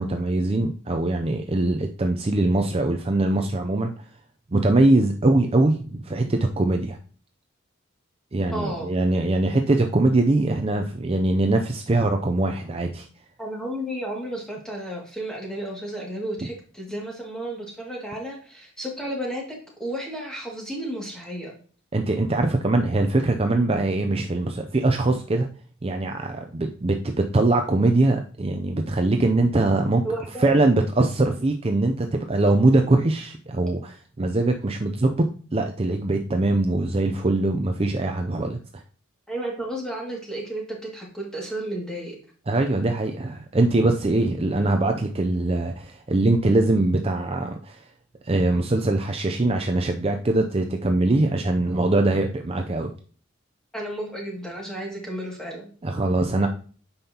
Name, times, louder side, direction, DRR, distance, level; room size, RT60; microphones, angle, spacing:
voice 1, 0.0-3.9 4.5-7.0 8.3-13.1 21.9-25.5 25.8-30.0 30.4-35.3 35.5-38.6 42.5-47.8 48.2-52.9 55.8-56.5, right 2 dB, 30° right, 4 dB, 0.5 m, -22 dB
voice 2, 8.5-9.0 13.4-21.5 30.0-30.8 39.3-42.2 53.7-55.7, right 1 dB, 5° left, -3 dB, 2.2 m, -33 dB
8.8 x 5.6 x 2.9 m, 0.42 s
head